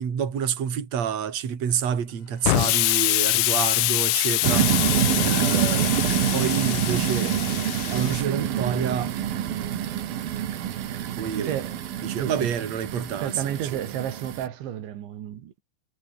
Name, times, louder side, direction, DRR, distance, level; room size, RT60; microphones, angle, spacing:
voice 1, 0.0-6.0 6.3-7.6 7.9-9.1 11.1-11.5 12.0-13.8, right 8 dB, 40° right, 3.8 m, -29 dB
Explosion, 2.4-8.2, left 20 dB, 80° left, 2.5 m, -25 dB
sound 1, 4.4-14.5, right 10 dB, 60° right, 3.4 m, -26 dB
voice 2, 11.4-11.7 12.2-12.5 13.2-15.6, right 10 dB, 85° right, 4.7 m, -31 dB
omnidirectional pair, 5.1 m